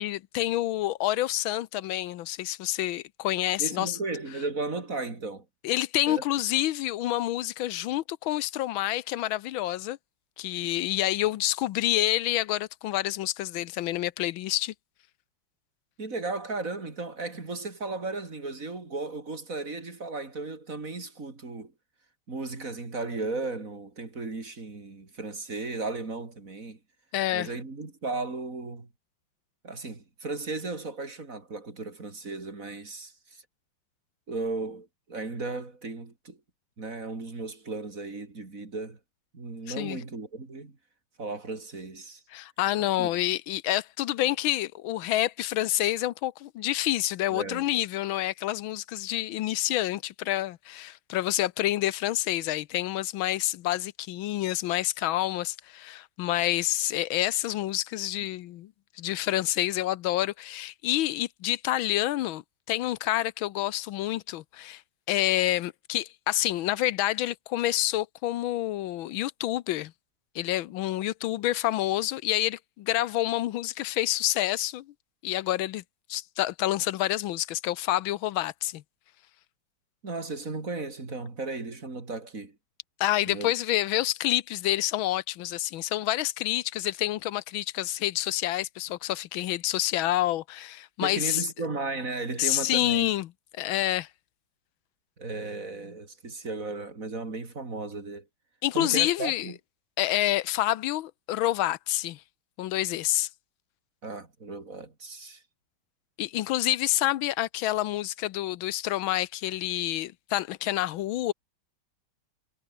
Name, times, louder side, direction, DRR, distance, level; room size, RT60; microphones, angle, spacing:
voice 1, 0.0-4.0 5.6-10.0 10.4-14.7 27.1-27.5 39.7-40.0 42.3-58.7 59.0-62.4 62.7-64.8 65.1-69.9 70.3-74.9 75.2-75.8 76.1-78.8 83.0-91.4 92.4-93.3 93.5-94.1 98.6-99.5 100.0-102.2 102.6-103.3 106.2-111.3, left 14 dB, 85° left, 1.6 m, -28 dB
voice 2, 3.6-5.5 6.1-6.2 16.0-21.7 22.3-26.8 27.3-28.9 29.6-33.4 34.3-36.4 36.8-39.0 39.3-40.8 41.2-42.2 42.8-43.1 47.3-47.7 80.0-82.6 83.3-83.5 91.0-93.1 95.2-98.3 98.7-99.6 104.0-105.4, right 3 dB, 40° right, 3.8 m, -35 dB
omnidirectional pair, 2.1 m